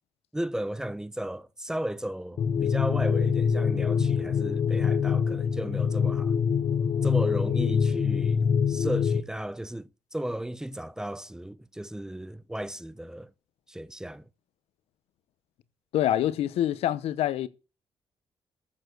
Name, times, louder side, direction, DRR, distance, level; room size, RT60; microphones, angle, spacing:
voice 1, 0.3-6.3 7.0-13.3 13.7-14.2, right 1 dB, 5° right, 0.7 m, -35 dB
sound 1, 2.4-9.2, left 7 dB, 60° left, 1.1 m, -25 dB
voice 2, 15.9-17.5, left 12 dB, 90° left, 0.9 m, -26 dB
14.5 x 7.1 x 6.1 m
cardioid pair, 110°, 10 cm